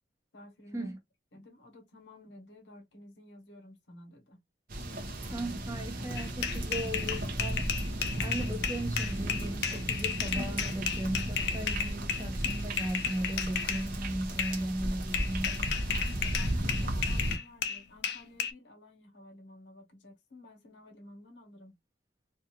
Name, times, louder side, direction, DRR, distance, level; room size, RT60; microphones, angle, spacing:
voice 1, 0.3-0.9 1.3-4.4 6.7-6.8 15.9-21.8, left 1 dB, 85° left, 0.9 m, -53 dB
sound 1, 4.7-17.4, right 1 dB, 55° right, 0.6 m, -34 dB
voice 2, 5.3-15.9, right 1 dB, 20° right, 0.7 m, -37 dB
sound 2, 6.2-13.9 14.4-14.6 15.1-18.5, left 7 dB, 65° left, 0.5 m, -33 dB
2.4 x 2.4 x 2.8 m
head